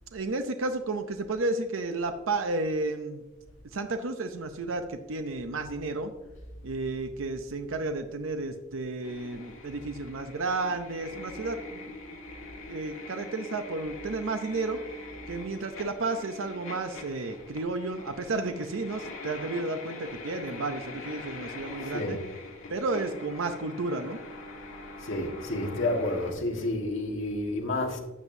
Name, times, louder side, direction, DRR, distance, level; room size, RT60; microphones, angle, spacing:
voice 1, 0.1-3.2 3.7-6.1 6.6-11.9 12.7-14.8 15.3-22.2 22.7-24.2, right 3 dB, 80° right, 0.6 m, -32 dB
sound 1, 9.0-26.3, left 2 dB, 90° left, 1.7 m, -43 dB
voice 2, 25.0-28.0, left 2 dB, 70° left, 1.5 m, -30 dB
12.0 x 7.5 x 2.7 m
head